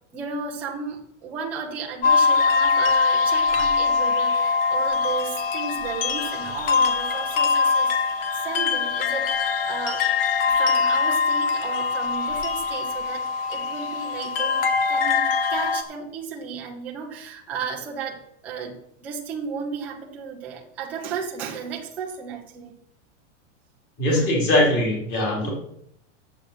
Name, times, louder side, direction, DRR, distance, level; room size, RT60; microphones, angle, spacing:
voice 1, 0.1-8.0 8.3-10.1 10.5-22.8 24.1-24.3 25.4-25.5, right 6 dB, 5° right, -3 dB, 0.4 m, -34 dB
sound 1, 2.0-15.8, left 5 dB, 50° left, 1.1 m, -23 dB
voice 2, 24.0-25.5, left 1 dB, 25° left, -1 dB, 3.1 m, -21 dB
8.7 x 7.4 x 6.5 m, 0.72 s
supercardioid pair, 180°, 37 cm